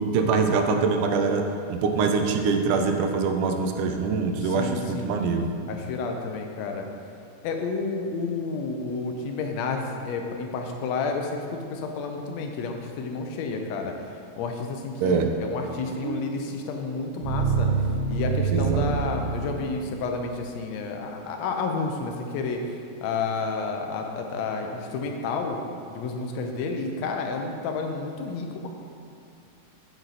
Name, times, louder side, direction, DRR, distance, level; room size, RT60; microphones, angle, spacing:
voice 1, 0.1-5.5 15.0-15.3 18.5-18.9, right 4 dB, 80° right, 5 dB, 2.2 m, -24 dB
voice 2, 4.4-5.2 5.7-6.9 7.4-13.9 14.4-17.7 18.1-22.6 23.0-25.6 25.9-28.7, left 4 dB, 70° left, 3 dB, 1.8 m, -30 dB
sound 1, 16.0-20.1, right 5 dB, 60° right, 2.9 m, -27 dB
8.8 x 7.9 x 4.1 m, 2.6 s
omnidirectional pair, 3.7 m